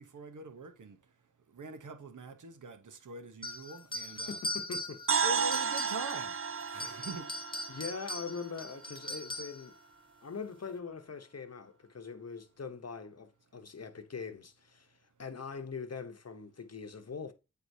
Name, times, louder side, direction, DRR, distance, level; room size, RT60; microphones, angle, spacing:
voice 1, 0.0-4.4 5.2-7.4, right 3 dB, 65° right, 0.9 m, -44 dB
sound 1, 3.4-6.3 6.7-9.7, left 1 dB, 15° left, 1.3 m, -40 dB
voice 2, 4.2-5.1 7.7-9.7 10.2-17.3, left 5 dB, 50° left, 0.9 m, -42 dB
sound 2, 5.1-9.0, right 6 dB, 45° right, 0.5 m, -33 dB
8.3 x 4.6 x 2.7 m
cardioid pair, 45°, 32 cm